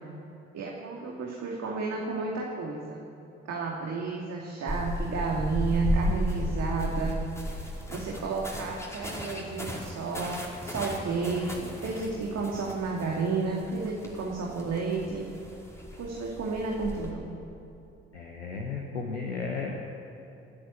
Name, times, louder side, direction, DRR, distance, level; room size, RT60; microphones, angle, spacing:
voice 1, 0.5-3.0 3.5-7.2 7.9-15.2 16.0-17.2, right 4 dB, 50° right, -1 dB, 2.5 m, -32 dB
sound 1, 4.7-17.1, equal, 10° left, 5.2 m, -35 dB
voice 2, 18.1-19.8, left 4 dB, 85° left, 1 dB, 1.2 m, -34 dB
28.0 x 10.0 x 9.5 m, 2.7 s
figure-of-eight pair, 45°, 33 cm